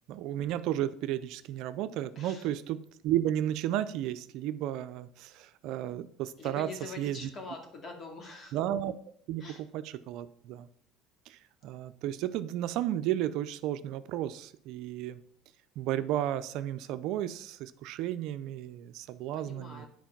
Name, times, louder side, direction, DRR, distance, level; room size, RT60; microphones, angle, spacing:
voice 1, 0.1-7.3 8.5-8.9 9.3-9.4 9.7-10.7 11.3-15.2 15.8-19.9, right 12 dB, 65° right, 12 dB, 0.5 m, -33 dB
voice 2, 6.4-8.6 9.4-9.6 19.3-19.9, left 3 dB, 35° left, 3 dB, 2.4 m, -44 dB
9.3 x 4.6 x 5.8 m, 0.65 s
supercardioid pair, 110°, 0 cm